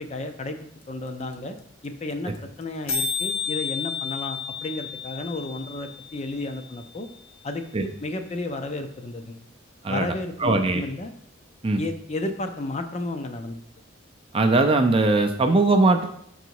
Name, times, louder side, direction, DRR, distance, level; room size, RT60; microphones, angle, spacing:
voice 1, 0.0-1.6 1.8-7.1 7.4-9.4 9.9-11.1 11.8-13.6, left 2 dB, 30° left, 7 dB, 0.5 m, -32 dB
sound 1, 0.8-0.9 1.1-1.2 1.3-1.6 1.8-2.4 2.6-2.7 2.9-6.9, left 6 dB, 85° left, 0.9 m, -31 dB
voice 2, 10.4-10.8 11.6-11.8 14.3-16.1, right 2 dB, 25° right, 5 dB, 0.4 m, -20 dB
6.0 x 4.0 x 4.6 m, 0.69 s
head